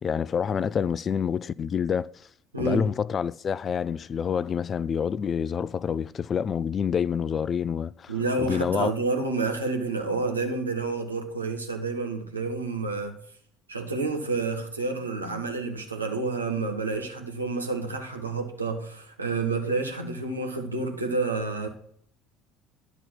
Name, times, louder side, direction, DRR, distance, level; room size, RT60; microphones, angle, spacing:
voice 1, 0.0-2.1 2.6-8.9, left 7 dB, 35° left, 0.3 m, -27 dB
voice 2, 2.5-2.9 8.1-13.2 13.7-21.7, right 3 dB, 85° right, 1.2 m, -29 dB
10.5 x 4.1 x 7.6 m
figure-of-eight pair, 60°, 0 cm